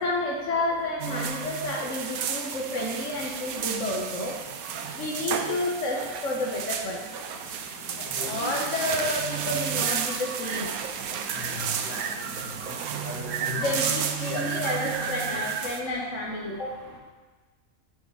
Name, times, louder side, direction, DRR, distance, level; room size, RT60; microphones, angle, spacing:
voice 1, 0.0-4.4 4.9-7.0 8.1-10.7 13.6-16.8, left 2 dB, 60° left, -2 dB, 1.5 m, -30 dB
sound 1, 1.0-15.8, right 7 dB, 85° right, 1.2 m, -32 dB
voice 2, 8.2-8.5 11.9-12.0 13.0-13.7 14.2-14.4, left 4 dB, 80° left, -2 dB, 2.5 m, -36 dB
10.5 x 8.0 x 4.9 m, 1.3 s
omnidirectional pair, 1.5 m